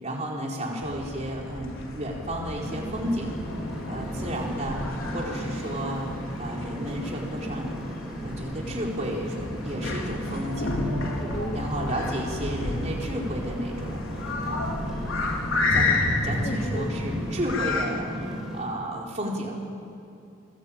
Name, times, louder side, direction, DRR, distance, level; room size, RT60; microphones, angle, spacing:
voice 1, 0.0-3.4 3.9-6.1 6.4-7.7 8.2-10.8 11.5-14.7 15.7-19.5, equal, 35° right, -2 dB, 4.4 m, -32 dB
sound 1, 0.8-17.9, left 2 dB, 85° left, 4.4 m, -31 dB
sound 2, 2.5-18.6, equal, 5° right, 7.0 m, -36 dB
voice 2, 11.1-11.7 15.9-16.0 16.4-16.9, equal, 35° left, 3 dB, 1.5 m, -35 dB
27.0 x 20.0 x 8.9 m, 2.6 s
head